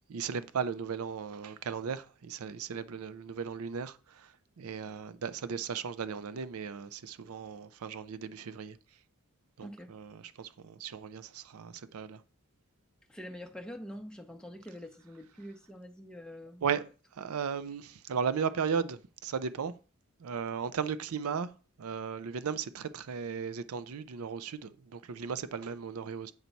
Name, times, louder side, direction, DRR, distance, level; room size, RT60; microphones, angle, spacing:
voice 1, 0.1-8.8 9.6-12.2 16.6-16.8 17.1-19.7 20.2-21.5 21.8-26.3, right 6 dB, 85° right, 0.5 m, -36 dB
voice 2, 9.6-10.0 13.1-16.6, equal, 5° left, 0.5 m, -45 dB
8.0 x 4.5 x 4.0 m
head